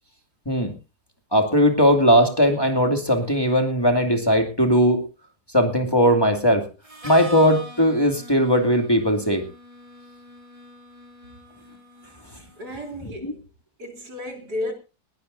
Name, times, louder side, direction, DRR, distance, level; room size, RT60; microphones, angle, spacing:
voice 1, 1.3-5.0 5.5-6.7 7.0-9.4 13.2-13.3, equal, 15° left, 2.5 m, -19 dB
Harmonica, 6.8-12.6, equal, 20° right, 4.8 m, -42 dB
voice 2, 12.6-13.4 13.8-14.7, left 1 dB, 85° right, 4.2 m, -33 dB
20.0 x 17.5 x 2.7 m
omnidirectional pair, 1.7 m